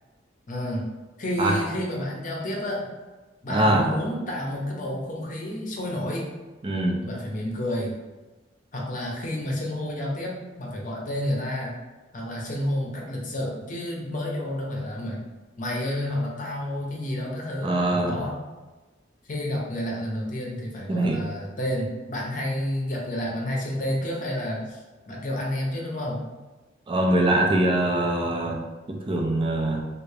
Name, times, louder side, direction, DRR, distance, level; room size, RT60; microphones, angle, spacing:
voice 1, 0.5-0.8 1.2-2.8 3.4-6.3 7.0-7.9 8.7-11.8 12.1-15.2 15.6-18.4 19.3-26.2, left 1 dB, 45° left, -2 dB, 0.8 m, -30 dB
voice 2, 3.5-3.9 6.6-7.1 17.6-18.2 20.9-21.3 26.9-29.8, right 1 dB, 30° right, 0 dB, 0.4 m, -23 dB
3.4 x 2.5 x 3.3 m, 1.2 s
head